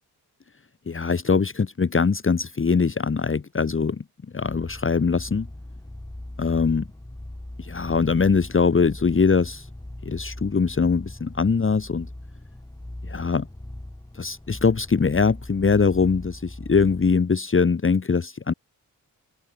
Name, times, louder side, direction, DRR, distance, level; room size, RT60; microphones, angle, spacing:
voice 1, 0.9-4.0 4.3-5.5 6.4-6.9 7.6-9.7 10.0-12.1 13.1-13.5 14.1-18.5, left 5 dB, 35° left, 1.3 m, -22 dB
sound 1, 4.4-17.2, left 1 dB, 10° left, 3.0 m, -40 dB
open air
cardioid pair, 75°, 37 cm